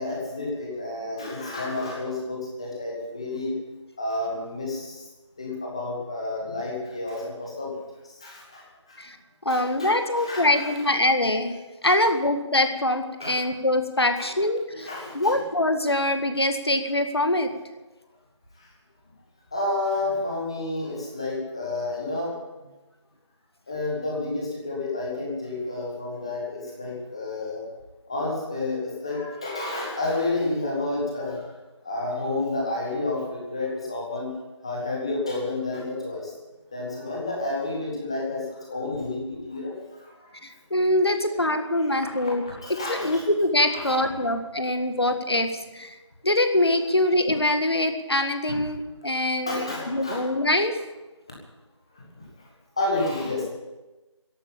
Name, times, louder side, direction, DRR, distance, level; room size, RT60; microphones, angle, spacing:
voice 1, 0.0-3.6 4.0-5.1 5.4-7.8 8.0-9.0 9.5-10.8 11.8-12.1 13.2-13.3 14.2-14.3 14.8-15.3 18.6-18.7 19.5-22.4 23.7-27.6 28.1-31.5 31.8-34.3 34.6-36.3 36.7-40.4 41.6-43.2 43.7-44.0 44.2-44.3 48.5-48.6 49.4-50.3 51.9-52.3 52.8-53.4, left 2 dB, 10° left, -3 dB, 1.6 m, -30 dB
voice 2, 9.5-14.9 15.1-17.5 40.4-42.4 42.9-45.5 45.7-45.9 46.2-50.8, left 1 dB, 55° left, 7 dB, 1.8 m, -24 dB
13.5 x 11.5 x 8.6 m, 1.1 s
figure-of-eight pair, 170°, 16 cm